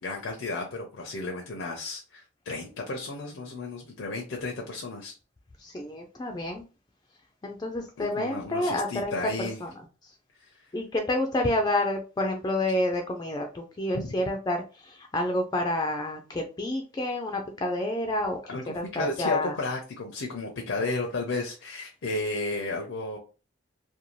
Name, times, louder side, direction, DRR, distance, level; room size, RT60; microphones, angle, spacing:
voice 1, 0.0-5.1 8.0-9.6 10.4-10.5 13.9-14.1 18.5-23.2, left 2 dB, 80° left, 1 dB, 0.5 m, -33 dB
voice 2, 5.6-6.6 7.4-9.1 9.6-9.7 10.7-18.4 18.7-19.5, left 1 dB, 20° left, 3 dB, 0.3 m, -29 dB
2.6 x 2.2 x 2.9 m, 0.33 s
head